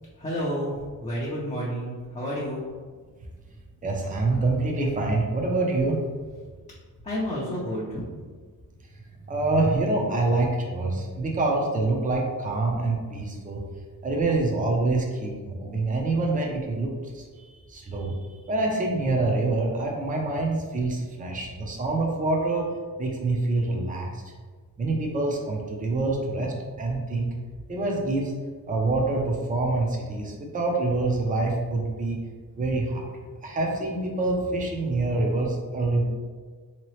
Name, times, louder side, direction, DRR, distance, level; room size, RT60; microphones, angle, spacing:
voice 1, 0.2-2.6 7.0-8.0, equal, 20° left, -6 dB, 0.5 m, -30 dB
voice 2, 3.8-6.0 9.3-13.6 14.0-22.7 23.0-24.3 24.8-27.3 27.7-28.3 28.7-32.2 32.6-33.1 33.4-36.0, right 2 dB, 25° right, 0 dB, 0.5 m, -26 dB
3.9 x 2.9 x 3.1 m, 1.5 s
wide cardioid pair, 175°, 34 cm